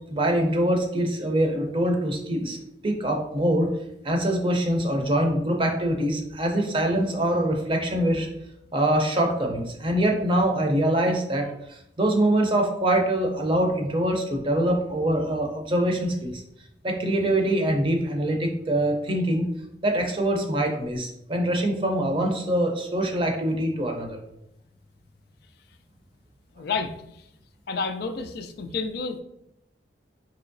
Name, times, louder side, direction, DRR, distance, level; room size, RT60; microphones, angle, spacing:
voice 1, 0.1-2.6 2.8-3.7 4.0-8.3 8.7-16.4 16.8-19.5 19.8-24.2, right 1 dB, 30° right, 2 dB, 0.6 m, -24 dB
voice 2, 26.6-26.9 27.7-29.2, left 4 dB, 60° left, 8 dB, 0.3 m, -30 dB
4.5 x 2.9 x 2.6 m, 0.81 s
head